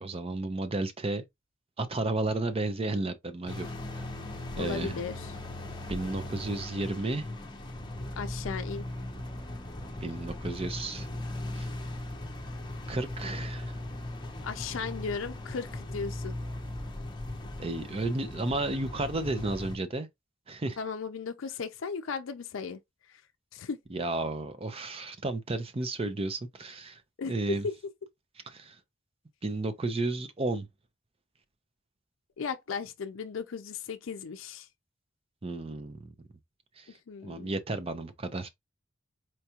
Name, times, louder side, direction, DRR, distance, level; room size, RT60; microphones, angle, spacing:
voice 1, 0.0-1.3 1.8-4.0 4.6-5.0 5.9-7.2 10.0-11.1 11.5-11.7 12.9-13.7 17.6-20.1 20.5-20.8 23.9-27.0 27.3-27.7 28.5-28.8 29.4-30.7 35.4-36.1 36.8-37.0 37.2-38.5, right 2 dB, 30° right, 0.5 m, -33 dB
sound 1, 3.5-19.8, left 1 dB, 25° left, 0.7 m, -38 dB
voice 2, 4.6-5.3 8.2-8.9 14.4-16.3 20.8-22.8 23.5-23.8 27.2-27.7 32.4-34.7 37.1-37.6, left 5 dB, 80° left, 0.5 m, -36 dB
4.5 x 2.4 x 2.8 m
head